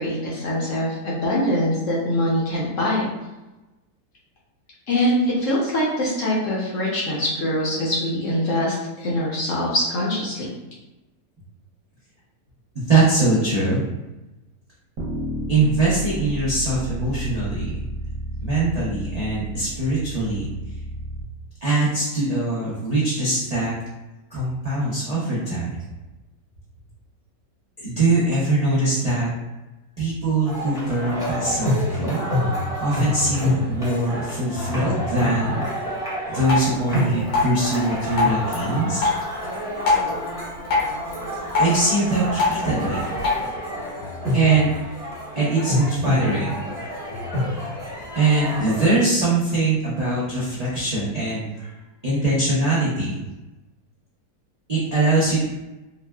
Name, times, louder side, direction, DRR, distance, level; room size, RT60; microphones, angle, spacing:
voice 1, 0.0-3.1 4.9-10.5, left 1 dB, 65° left, -5 dB, 0.8 m, -23 dB
voice 2, 12.7-13.8 15.5-17.7 18.4-20.5 21.6-23.7 24.3-25.8 27.8-29.3 30.0-32.2 32.8-35.6 36.3-39.0 41.5-43.0 44.3-44.7 45.3-46.6 48.1-51.7 52.0-53.2 54.7-55.4, right 2 dB, 80° right, -9 dB, 0.3 m, -22 dB
sound 1, 15.0-21.2, right 2 dB, 55° right, 1.1 m, -32 dB
sound 2, 30.4-48.9, left 1 dB, 5° right, 0.5 m, -28 dB
Drip, 36.4-43.4, left 3 dB, 85° left, 1.5 m, -26 dB
3.8 x 2.1 x 2.2 m, 1.0 s
omnidirectional pair, 1.9 m